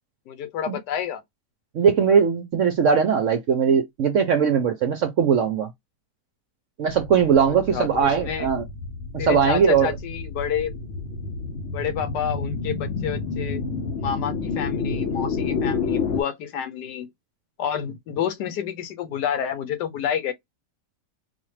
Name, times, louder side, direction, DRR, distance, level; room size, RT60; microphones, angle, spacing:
voice 1, 0.3-1.2 7.5-8.5 9.2-10.8 11.7-13.6 14.0-17.1 17.6-20.3, left 8 dB, 80° left, 1.3 m, -29 dB
voice 2, 1.7-5.7 6.8-8.6 9.1-9.9, right 7 dB, 65° right, 0.8 m, -20 dB
sound 1, 6.9-16.2, left 4 dB, 65° left, 0.7 m, -29 dB
4.1 x 2.3 x 3.2 m
omnidirectional pair, 1.8 m